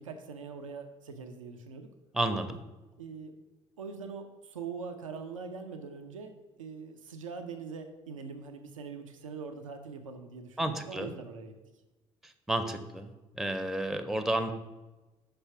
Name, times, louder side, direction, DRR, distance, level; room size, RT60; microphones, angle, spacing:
voice 1, 0.0-1.9 3.0-3.3 3.8-11.6, right 5 dB, 85° right, 6 dB, 0.4 m, -42 dB
voice 2, 2.1-2.6 10.6-11.1 12.5-13.1 13.4-14.5, right 1 dB, ahead, 9 dB, 0.6 m, -31 dB
5.7 x 3.3 x 5.6 m, 1.1 s
figure-of-eight pair, 50°, 17 cm